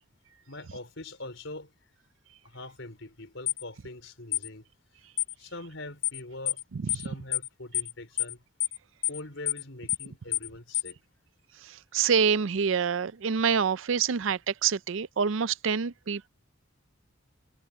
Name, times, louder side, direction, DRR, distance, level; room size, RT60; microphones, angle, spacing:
voice 1, 0.5-1.7 2.4-4.6 5.4-6.6 6.9-8.4 9.1-11.0, left 2 dB, 70° left, 4.7 m, -43 dB
sound 1, 3.5-3.6 4.3-4.5 5.2-5.3 6.0-6.2 6.5-6.6 6.9-7.1 7.3-7.5 7.7-7.9 8.2-8.3 8.6-8.8 9.0-9.2 9.5-9.6 9.9-10.1 10.3-10.5 10.7-10.9, left 16 dB, 40° left, 0.7 m, -28 dB
voice 2, 6.7-7.1 11.6-16.3, right 6 dB, 75° right, 0.5 m, -27 dB
head